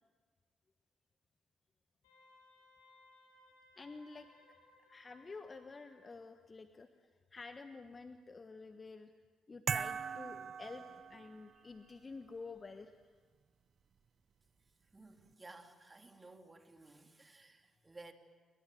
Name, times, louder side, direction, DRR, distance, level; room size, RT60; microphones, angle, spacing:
Wind instrument woodwind instrument, 2.0-6.2, left 2 dB, 80° left, 7.1 m, -65 dB
voice 1, 3.8-4.3 4.8-6.9 7.3-9.1 9.5-12.9, left 4 dB, 35° left, 8 dB, 1.4 m, -50 dB
sound 1, 9.7-11.6, right 7 dB, 50° right, 0.8 m, -40 dB
voice 2, 14.9-18.1, right 2 dB, 25° right, 5 dB, 3.4 m, -56 dB
29.5 x 25.0 x 7.9 m, 1.5 s
hypercardioid pair, 45°, 0 cm